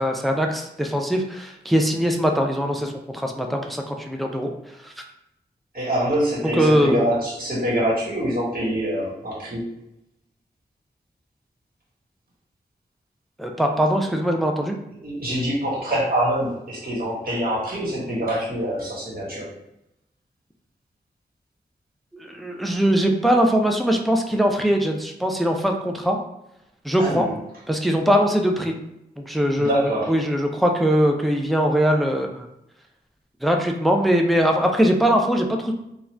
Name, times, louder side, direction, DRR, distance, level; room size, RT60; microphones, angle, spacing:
voice 1, 0.0-4.5 4.8-4.9 6.6-7.1 13.4-14.8 22.1-26.2 26.8-27.3 27.7-28.7 29.2-32.5 33.4-35.7, equal, ahead, 2 dB, 0.4 m, -21 dB
voice 2, 5.7-9.6 15.0-19.5 27.0-27.3 29.6-30.1, equal, 55° right, -6 dB, 1.3 m, -25 dB
2.5 x 2.3 x 3.2 m, 0.83 s
cardioid pair, 55°, 18 cm